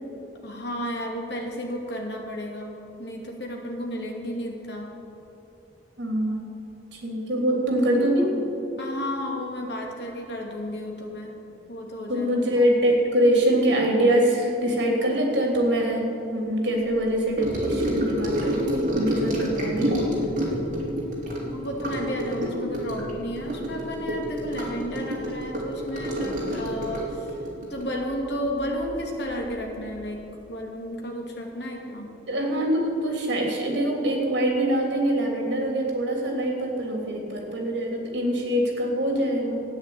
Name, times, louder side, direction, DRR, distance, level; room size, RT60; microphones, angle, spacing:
voice 1, 0.4-4.9 8.8-11.3 11.7-12.3 21.4-27.4 27.7-30.2 30.5-32.1, equal, 60° left, 0 dB, 2.4 m, -32 dB
voice 2, 6.0-6.4 6.9-8.4 12.1-20.0 32.3-39.6, right 1 dB, 65° right, 0 dB, 3.0 m, -24 dB
Gurgling / Sink (filling or washing) / Trickle dribble, 17.4-29.0 29.3-29.6 29.9-30.0, equal, 40° right, 3.4 m, -28 dB
13.5 x 9.3 x 8.5 m, 2.9 s
head